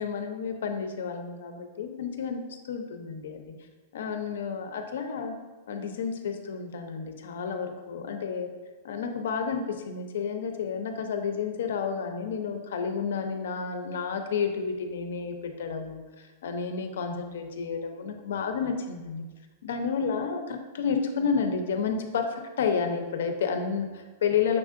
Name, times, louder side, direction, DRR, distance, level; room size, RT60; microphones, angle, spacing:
voice 1, 0.0-3.6 3.9-5.3 5.7-8.5 8.8-19.3 19.6-24.6, left 6 dB, 80° left, 6 dB, 0.5 m, -31 dB
5.9 x 3.6 x 2.5 m, 1.2 s
supercardioid pair, 175°, 0 cm